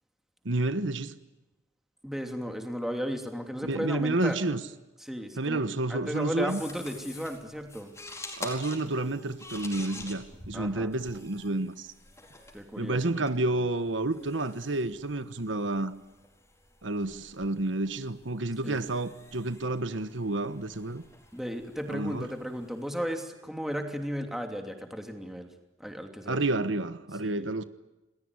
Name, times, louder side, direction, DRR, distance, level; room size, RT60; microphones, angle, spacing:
voice 1, 0.4-1.1 3.6-4.6 5.4-6.6 8.4-11.9 12.8-15.9 16.8-21.0 21.9-22.3 26.3-27.6, right 2 dB, 80° right, 1.3 m, -30 dB
voice 2, 2.0-4.4 5.0-5.6 5.9-7.9 10.5-10.9 12.5-13.1 18.6-18.8 21.3-25.5 25.8-26.4 27.2-27.5, equal, ahead, 2.9 m, -35 dB
sound 1, 6.5-23.0, left 2 dB, 15° left, 4.7 m, -48 dB
28.0 x 20.5 x 9.8 m
head